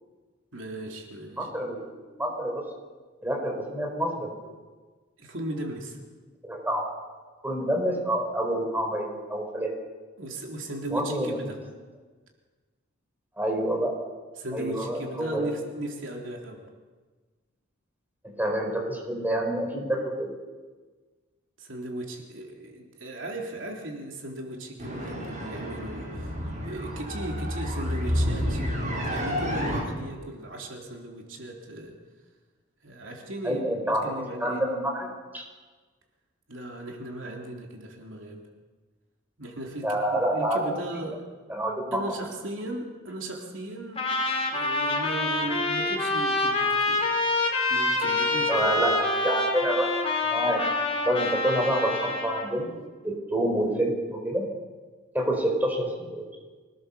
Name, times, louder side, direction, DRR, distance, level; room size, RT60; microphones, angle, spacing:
voice 1, 0.5-1.5 5.2-6.0 10.2-11.6 14.4-16.7 21.6-28.6 29.0-31.9 32.8-34.6 36.5-38.4 39.4-41.2 41.9-44.1 44.5-47.1 47.7-48.7, right 1 dB, 70° right, 0 dB, 3.6 m, -37 dB
voice 2, 1.4-2.6 3.2-4.3 6.4-6.8 7.4-9.7 10.9-11.4 13.4-13.9 14.5-15.5 18.4-20.3 33.4-35.1 35.3-35.4 39.8-40.7 41.5-42.0 48.5-49.9 50.2-50.7 51.0-52.7 53.0-54.4 55.1-56.2, right 1 dB, 10° right, 1 dB, 4.5 m, -27 dB
sound 1, 24.8-29.8, equal, 40° right, 7.4 m, -30 dB
Trumpet, 44.0-52.5, left 2 dB, 30° left, 3.5 m, -26 dB
25.5 x 18.0 x 7.1 m, 1.4 s
head